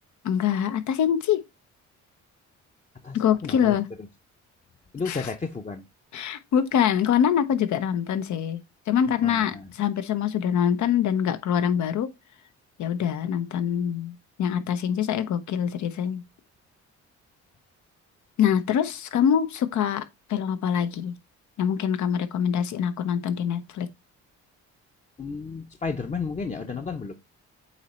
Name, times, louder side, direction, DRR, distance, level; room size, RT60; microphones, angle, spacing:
voice 1, 0.2-1.4 3.1-3.9 5.1-5.3 6.1-8.6 8.9-12.1 12.8-16.2 18.4-20.0 20.3-21.1 21.6-23.9, left 8 dB, 70° left, 0.8 m, -24 dB
voice 2, 3.0-4.1 4.9-5.8 9.2-9.7 25.2-27.1, left 4 dB, 25° left, 0.7 m, -33 dB
8.3 x 3.1 x 4.3 m
cardioid pair, 90°, 30 cm